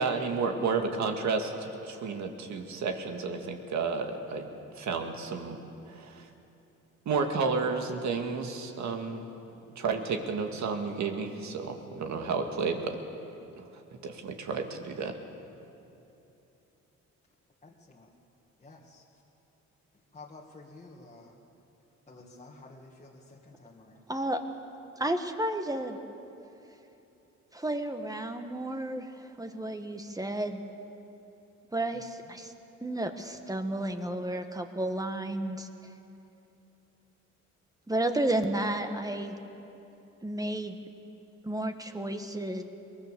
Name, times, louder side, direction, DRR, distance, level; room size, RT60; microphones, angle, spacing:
voice 1, 0.0-4.5 4.8-5.6 5.9-6.3 7.1-9.2 9.8-13.0 13.6-13.7 14.0-15.1, right 4 dB, 70° right, 4 dB, 2.1 m, -31 dB
voice 2, 17.6-18.1 18.6-19.0 20.1-21.4 22.1-24.0 28.4-28.5 31.9-32.0, left 2 dB, 25° left, -3 dB, 2.0 m, -51 dB
voice 3, 24.1-24.4 25.0-26.0 27.5-29.1 29.4-30.6 31.7-32.5 32.8-35.7 37.9-39.4 40.2-40.8 41.4-42.6, right 1 dB, 10° right, 6 dB, 1.5 m, -32 dB
22.5 x 19.5 x 6.9 m, 2.9 s
cardioid pair, 90°, 30 cm